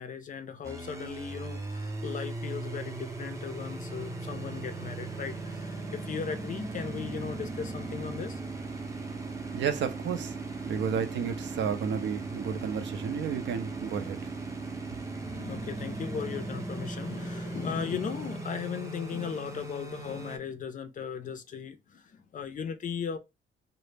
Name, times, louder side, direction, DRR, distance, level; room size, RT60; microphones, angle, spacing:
voice 1, 0.0-8.6 15.3-23.2, left 7 dB, 40° left, 0.4 m, -37 dB
sound 1, 0.6-20.4, right 3 dB, 15° right, 0.5 m, -38 dB
voice 2, 9.5-10.4 10.6-14.2, right 7 dB, 65° right, 0.5 m, -32 dB
2.0 x 2.0 x 3.2 m
cardioid pair, 90°, 20 cm